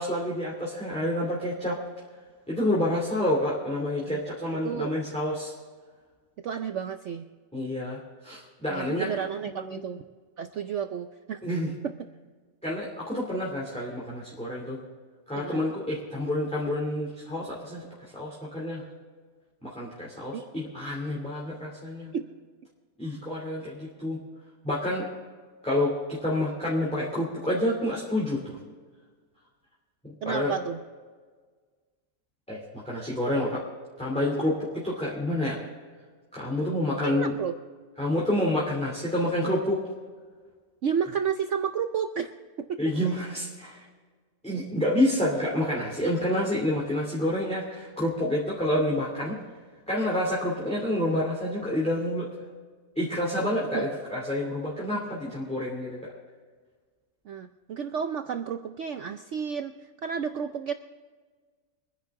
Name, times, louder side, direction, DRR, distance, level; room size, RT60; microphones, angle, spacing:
voice 1, 0.0-1.8 2.5-5.5 7.5-9.1 9.5-9.8 11.4-11.7 12.6-14.8 15.3-17.8 18.1-18.8 19.6-22.1 23.0-24.2 24.6-25.1 25.6-28.6 30.0-30.5 32.5-33.7 34.0-35.6 36.3-37.3 38.0-39.8 42.8-43.8 44.4-49.4 49.9-52.3 53.0-56.0, left 1 dB, 5° left, -5 dB, 2.5 m, -28 dB
voice 2, 6.4-7.3 8.7-10.0 10.4-11.4 11.8-11.9 15.4-15.6 20.3-20.4 22.1-22.3 30.2-30.8 37.0-37.5 40.8-42.3 42.6-42.9 53.7-53.9 57.3-60.7, right 7 dB, 65° right, 8 dB, 0.7 m, -31 dB
24.5 x 10.5 x 3.7 m, 1.5 s
omnidirectional pair, 1.8 m